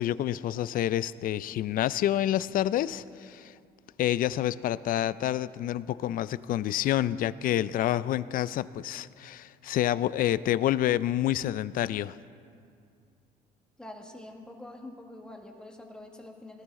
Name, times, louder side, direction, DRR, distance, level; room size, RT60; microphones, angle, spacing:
voice 1, 0.0-3.5 4.0-12.2, left 12 dB, 55° left, 17 dB, 0.4 m, -28 dB
voice 2, 13.8-16.6, left 1 dB, 5° left, 2 dB, 1.6 m, -45 dB
19.0 x 12.5 x 3.7 m, 2.3 s
cardioid pair, 110°, 17 cm